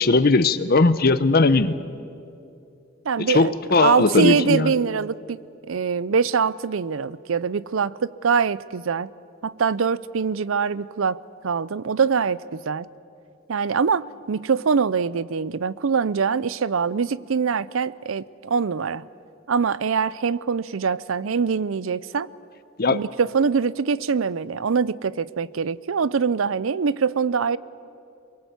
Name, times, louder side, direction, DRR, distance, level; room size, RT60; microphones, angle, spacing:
voice 1, 0.0-1.7 3.2-4.7 22.8-23.0, left 3 dB, 50° left, 14 dB, 0.8 m, -18 dB
voice 2, 3.1-5.4 5.7-9.1 9.4-11.2 11.4-12.9 13.5-19.0 19.5-22.3 22.9-27.6, right 5 dB, 75° right, 19 dB, 0.5 m, -23 dB
23.0 x 22.5 x 8.2 m, 2.6 s
head